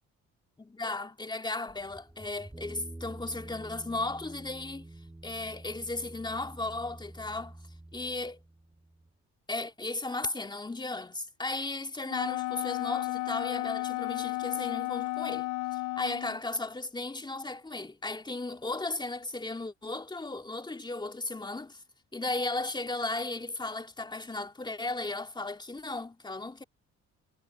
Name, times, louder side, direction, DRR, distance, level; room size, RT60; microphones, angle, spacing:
voice 1, 0.6-4.9 5.2-7.6 7.9-8.4 9.5-21.8 22.1-26.6, left 2 dB, 15° left, 2.4 m, -35 dB
sound 1, 1.7-9.1, right 1 dB, 10° right, 2.2 m, -48 dB
Wind instrument woodwind instrument, 12.1-16.4, left 20 dB, 90° left, 0.6 m, -33 dB
cardioid pair, 90°, 30 cm